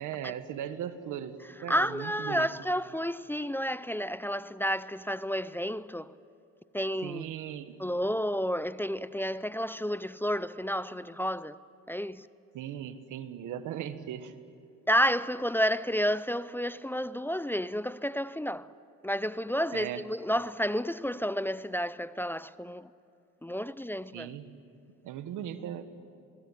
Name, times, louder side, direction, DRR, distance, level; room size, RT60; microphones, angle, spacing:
voice 1, 0.0-1.4 1.6-2.5 7.0-7.8 12.5-14.3 19.7-20.0 24.1-24.4 25.0-25.8, right 10 dB, 90° right, 1.5 m, -38 dB
voice 2, 1.7-6.2 6.7-7.3 7.8-11.6 11.9-12.3 14.9-18.7 19.0-22.9 23.4-24.3, equal, 5° left, 0.5 m, -31 dB
26.5 x 21.0 x 9.9 m
cardioid pair, 90°, 30 cm